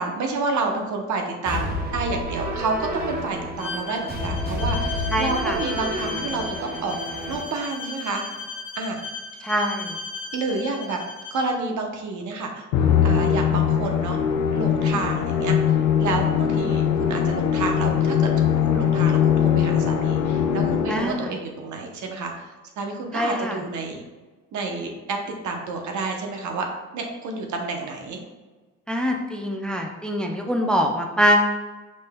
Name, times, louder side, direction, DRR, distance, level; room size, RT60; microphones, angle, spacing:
voice 1, 0.0-6.9 7.3-8.2 8.8-9.0 10.3-11.0 11.3-12.7 13.0-14.2 14.5-24.0 24.5-25.2 25.4-26.7 26.9-28.2, right 3 dB, 70° right, 2 dB, 0.8 m, -29 dB
sound 1, 1.5-7.4, equal, 30° right, 0.8 m, -30 dB
Bowed string instrument, 3.6-11.5, left 4 dB, 40° left, 0.8 m, -36 dB
voice 2, 5.1-5.6 9.4-10.0 20.9-21.3 23.1-23.6 28.9-31.4, equal, 5° left, 2 dB, 0.4 m, -23 dB
Musical instrument, 12.7-21.2, left 8 dB, 90° left, 0.5 m, -21 dB
5.3 x 3.3 x 2.2 m, 1.3 s
cardioid pair, 90°, 30 cm